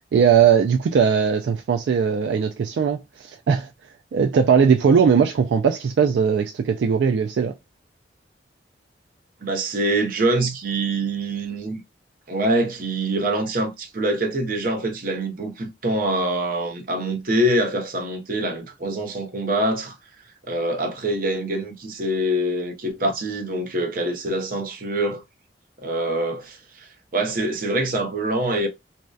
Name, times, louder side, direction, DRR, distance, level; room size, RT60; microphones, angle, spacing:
voice 1, 0.1-3.7 4.1-7.5, right 6 dB, 75° right, 0.3 m, -19 dB
voice 2, 9.4-11.8 12.3-20.0 20.4-25.2 25.8-28.7, right 1 dB, 50° right, 0.7 m, -25 dB
2.6 x 2.1 x 2.2 m
head